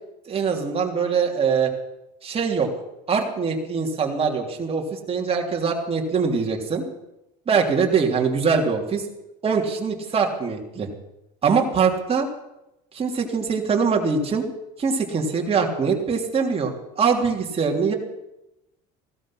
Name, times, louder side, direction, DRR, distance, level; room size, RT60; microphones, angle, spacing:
voice 1, 0.3-1.7 2.2-2.7 3.1-6.8 7.5-9.0 9.4-10.9 11.4-12.3 12.9-14.4 14.8-17.9, right 5 dB, 30° right, 1 dB, 3.1 m, -23 dB
16.5 x 13.0 x 5.9 m, 0.90 s
supercardioid pair, 105°, 20 cm